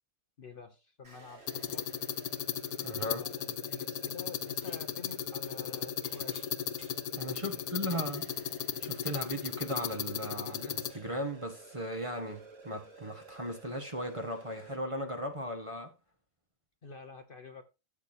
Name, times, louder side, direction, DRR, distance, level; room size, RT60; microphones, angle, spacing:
voice 1, 0.4-1.9 3.0-6.5 7.3-7.6 8.0-8.1 16.8-17.6, left 4 dB, 45° left, 1.2 m, -49 dB
sound 1, 1.0-14.8, right 4 dB, 45° right, 3.5 m, -53 dB
sound 2, 1.5-10.9, left 9 dB, 80° left, 1.2 m, -36 dB
voice 2, 2.8-3.2 7.1-8.2 8.8-15.9, equal, 25° right, 1.4 m, -37 dB
Dishes pots and pans / Chink clink, 4.0-4.8 5.1-7.2 7.6-7.7 8.0-11.1, equal, 5° right, 4.0 m, -61 dB
12.5 x 8.3 x 2.7 m
omnidirectional pair, 1.5 m